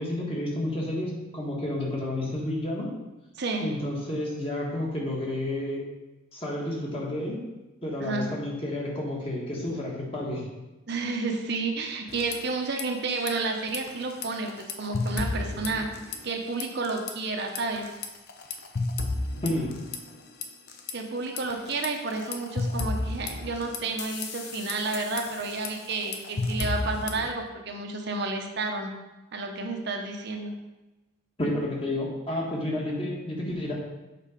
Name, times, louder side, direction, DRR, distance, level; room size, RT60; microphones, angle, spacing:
voice 1, 0.0-2.9 3.6-5.8 6.3-7.4 7.8-10.4 19.4-19.7 31.4-33.7, left 1 dB, 25° left, -3 dB, 1.6 m, -30 dB
voice 2, 3.4-3.7 8.0-8.3 10.9-14.5 14.8-15.9 16.2-17.8 20.9-28.9 29.3-30.5, right 3 dB, 55° right, 2 dB, 0.8 m, -31 dB
sound 1, 12.1-12.8 13.1-13.3 13.7-16.3 16.6-17.1 17.5-20.9 21.4-27.3, left 3 dB, 50° left, 0.7 m, -33 dB
7.6 x 4.2 x 4.9 m, 1.1 s
head